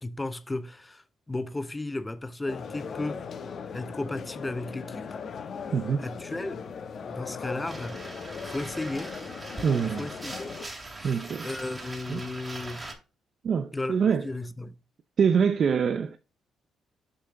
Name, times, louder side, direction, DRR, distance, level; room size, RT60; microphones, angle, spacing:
voice 1, 0.0-3.2 3.7-5.2 6.0-6.7 7.1-8.0 8.5-9.1 9.8-10.6 11.0-12.9 13.7-14.0 14.2-14.8, left 2 dB, 15° left, 0.8 m, -35 dB
sound 1, 2.5-10.7, left 6 dB, 55° left, 1.0 m, -39 dB
voice 2, 5.7-6.1 9.6-10.1 11.0-11.5 12.1-12.2 13.4-14.3 15.2-16.2, right 6 dB, 55° right, 0.6 m, -24 dB
sound 2, 7.7-12.9, right 2 dB, 25° right, 2.3 m, -41 dB
7.0 x 5.6 x 3.7 m
cardioid pair, 90°, 0 cm